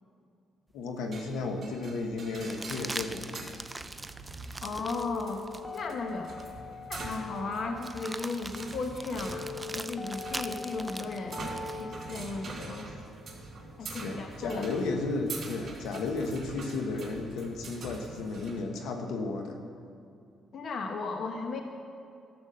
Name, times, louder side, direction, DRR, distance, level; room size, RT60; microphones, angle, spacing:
voice 1, 0.7-3.6 13.8-19.6, left 3 dB, 85° left, 4 dB, 1.1 m, -34 dB
sound 1, 0.8-0.9 2.4-5.9 6.4-6.5 7.8-11.9 14.0-14.9, right 2 dB, 15° right, 0.4 m, -42 dB
sound 2, 1.1-18.6, right 3 dB, 50° right, 3.3 m, -45 dB
voice 2, 4.6-5.4 5.7-6.3 6.9-12.9 13.8-14.6 20.5-21.6, left 3 dB, 60° left, 4 dB, 0.9 m, -36 dB
sound 3, 4.8-14.8, left 3 dB, 10° left, 1.2 m, -43 dB
12.0 x 7.1 x 6.5 m, 2.5 s
cardioid pair, 90°, 0 cm